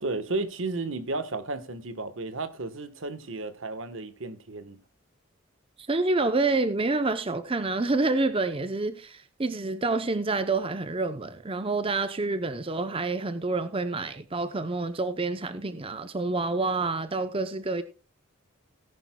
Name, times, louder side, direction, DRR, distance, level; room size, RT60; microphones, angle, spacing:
voice 1, 0.0-4.8, right 3 dB, 70° right, 1.3 m, -33 dB
voice 2, 5.8-17.8, right 3 dB, 25° right, 0.7 m, -28 dB
18.0 x 10.5 x 2.3 m
head